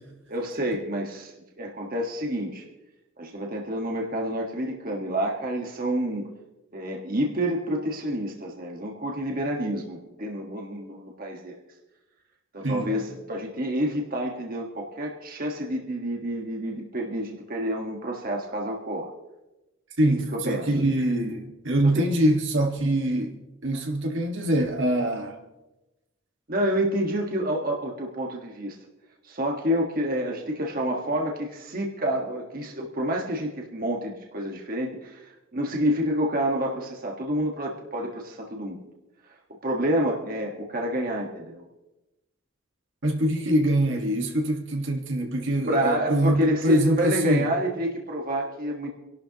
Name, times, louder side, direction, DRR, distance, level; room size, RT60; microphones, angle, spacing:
voice 1, 0.3-2.6 3.2-6.2 6.7-11.6 12.5-19.1 20.1-20.7 21.8-22.0 26.5-28.8 29.2-38.9 39.6-41.6 45.7-48.9, right 1 dB, 45° right, 0 dB, 1.4 m, -28 dB
voice 2, 12.6-12.9 20.0-23.4 23.6-25.4 43.0-47.5, right 1 dB, 60° right, 2 dB, 1.6 m, -24 dB
27.0 x 12.0 x 2.9 m, 1.0 s
head